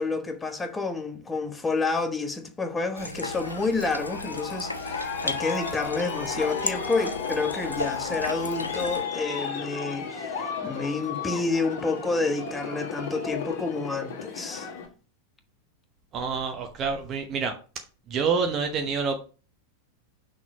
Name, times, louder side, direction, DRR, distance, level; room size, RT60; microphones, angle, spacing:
voice 1, 0.0-14.7, left 3 dB, 10° left, 0.9 m, -29 dB
sound 1, 3.0-9.0, left 2 dB, 85° left, 0.5 m, -35 dB
Aircraft, 3.2-14.9, left 6 dB, 50° left, 1.6 m, -34 dB
voice 2, 16.1-17.5 18.1-19.2, right 5 dB, 30° right, 0.8 m, -27 dB
6.0 x 3.8 x 6.0 m
figure-of-eight pair, 90°, 0 cm